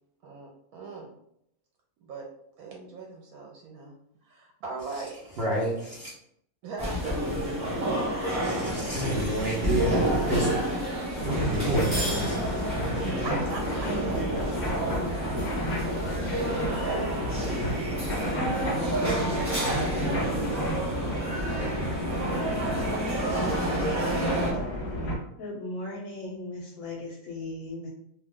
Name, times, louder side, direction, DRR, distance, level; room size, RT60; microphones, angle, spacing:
voice 1, 0.2-1.1 2.0-2.3 2.6-4.0 4.2-5.4 6.6-7.5 8.2-9.1 13.0-14.2 15.0-18.7 20.1-23.3, right 3 dB, 85° right, 0 dB, 1.1 m, -42 dB
voice 2, 5.4-6.1 8.4-13.0, right 1 dB, 55° right, -5 dB, 0.7 m, -30 dB
sound 1, 6.8-24.5, right 1 dB, 15° right, 0.8 m, -29 dB
sound 2, 11.1-25.1, equal, 45° left, 0.6 m, -32 dB
voice 3, 25.4-27.9, left 2 dB, 65° left, -3 dB, 0.9 m, -37 dB
2.6 x 2.2 x 3.5 m, 0.73 s
omnidirectional pair, 1.5 m